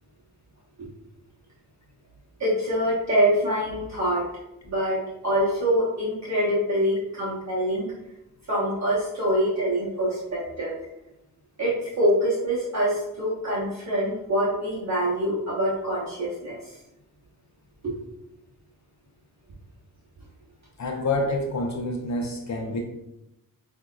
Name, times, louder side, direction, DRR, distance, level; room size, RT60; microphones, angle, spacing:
voice 1, 2.4-4.2 4.6-7.9 8.5-10.7 11.6-16.6 17.8-17.9, equal, 50° right, -7 dB, 1.1 m, -25 dB
voice 2, 20.8-22.8, left 2 dB, 50° left, 2 dB, 0.6 m, -27 dB
6.1 x 2.8 x 2.2 m, 0.89 s
wide cardioid pair, 140°, 35 cm